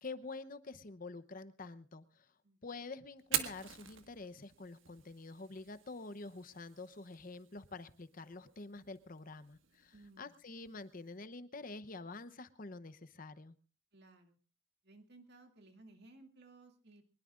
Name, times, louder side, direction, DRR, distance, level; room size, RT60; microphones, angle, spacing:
voice 1, 0.0-2.3 2.6-13.5, left 3 dB, 45° left, 13 dB, 0.8 m, -47 dB
Fire, 3.2-11.2, right 10 dB, 80° right, 1.6 m, -45 dB
voice 2, 9.9-10.6 13.9-14.4 14.8-17.0, right 2 dB, 55° right, 4 dB, 2.4 m, -59 dB
23.5 x 20.5 x 2.5 m, 0.33 s
head